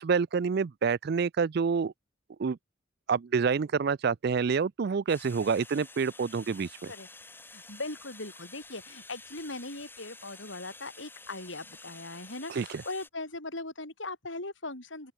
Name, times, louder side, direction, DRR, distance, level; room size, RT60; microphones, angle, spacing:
voice 1, 0.0-1.9 2.4-2.6 3.1-6.9 12.5-12.8, right 5 dB, 55° right, 0.4 m, -28 dB
sound 1, 5.1-13.1, left 3 dB, 10° left, 5.9 m, -50 dB
voice 2, 7.5-15.1, left 2 dB, 75° left, 6.9 m, -39 dB
open air
head